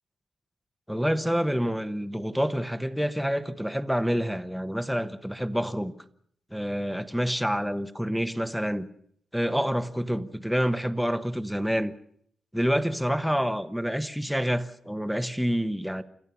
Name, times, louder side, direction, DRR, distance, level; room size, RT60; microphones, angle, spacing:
voice 1, 0.9-5.9 6.5-8.9 9.3-11.9 12.5-16.0, equal, ahead, 1.1 m, -27 dB
29.5 x 14.0 x 6.9 m
cardioid pair, 105°, 0 cm